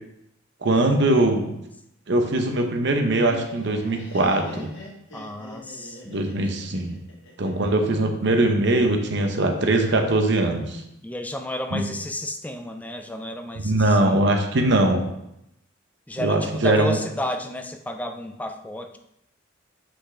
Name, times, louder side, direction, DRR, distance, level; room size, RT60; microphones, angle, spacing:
voice 1, 0.6-1.5 2.1-4.7 6.1-7.0 7.4-10.8 11.7-11.9 13.6-15.1 16.2-17.0, right 2 dB, 60° right, 5 dB, 0.8 m, -21 dB
Laughter, 2.8-7.9, left 1 dB, 70° left, 1.5 m, -41 dB
voice 2, 5.1-6.6 11.0-14.2 16.1-19.0, equal, 10° left, 6 dB, 0.4 m, -32 dB
6.1 x 5.1 x 3.3 m, 0.82 s
head